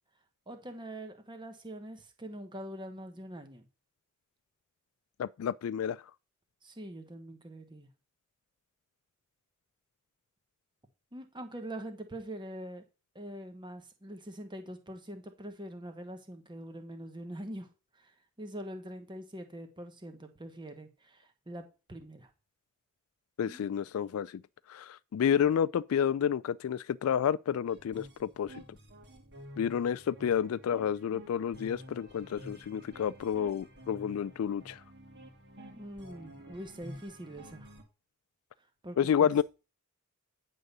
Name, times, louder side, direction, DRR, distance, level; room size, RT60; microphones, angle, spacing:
voice 1, 0.5-3.6 6.6-7.9 11.1-12.8 13.1-17.7 17.9-18.1 18.4-22.3 23.4-23.6 35.7-37.7 38.8-39.3, right 1 dB, 20° right, 1.1 m, -44 dB
voice 2, 5.2-6.0 23.4-24.4 24.7-28.6 29.6-34.8 39.0-39.4, left 8 dB, 80° left, 0.3 m, -30 dB
sound 1, 27.7-37.8, equal, 55° right, 2.0 m, -51 dB
9.4 x 3.8 x 6.7 m
head